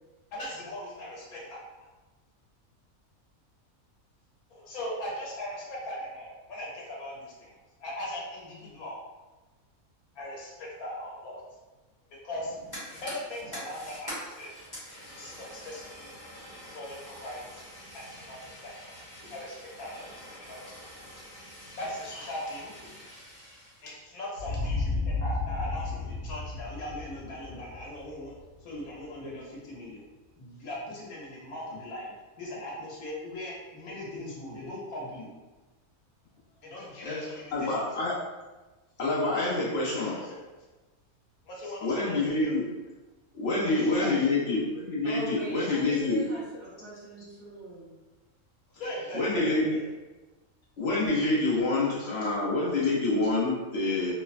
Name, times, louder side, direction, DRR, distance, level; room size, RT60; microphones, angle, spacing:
voice 1, 0.3-1.6 4.5-7.5 7.8-9.0 10.1-11.4 12.2-12.5 12.8-14.5 15.1-16.1 16.6-17.4 17.9-18.8 19.3-20.1 20.4-20.7 21.8-22.7 23.8-28.3 28.6-30.0 30.4-32.1 32.4-35.3 36.6-37.9 40.1-40.4 41.5-42.6 43.5-43.7 44.0-44.3 48.8-49.8, left 1 dB, 80° left, -4 dB, 1.2 m, -39 dB
Fire, 12.3-23.9, equal, 20° left, 0.9 m, -45 dB
sound 1, 24.4-29.0, left 3 dB, 70° right, 1.0 m, -33 dB
voice 2, 36.9-38.1 39.0-40.3 41.8-42.6 43.3-46.3 49.1-49.8 50.8-54.1, left 2 dB, 60° left, -6 dB, 0.7 m, -27 dB
voice 3, 45.0-48.0, equal, 55° right, -8 dB, 0.6 m, -40 dB
3.1 x 2.1 x 2.4 m, 1.2 s
omnidirectional pair, 1.5 m